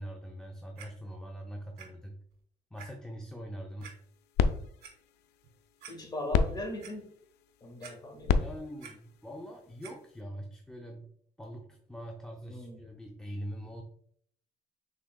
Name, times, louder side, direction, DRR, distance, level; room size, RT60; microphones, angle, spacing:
voice 1, 0.0-2.2 2.7-3.9 8.3-11.0 11.4-13.8, equal, 5° left, 1 dB, 0.5 m, -43 dB
Clock, 0.8-0.9 1.8-1.9 2.3-2.4 2.8-2.9 3.8-3.9 4.6-4.9 5.4-5.5 5.8-5.9 6.4-6.9 7.8-8.3 8.6-8.9 9.8-9.9 10.6-10.7, right 7 dB, 70° right, 1.4 m, -48 dB
sound 1, 3.8-10.2, left 6 dB, 80° left, 0.4 m, -34 dB
voice 2, 5.9-7.1 7.6-8.4 12.5-12.8, left 1 dB, 25° left, 3 dB, 1.4 m, -39 dB
6.0 x 3.7 x 2.2 m, 0.63 s
cardioid pair, 110°, 17 cm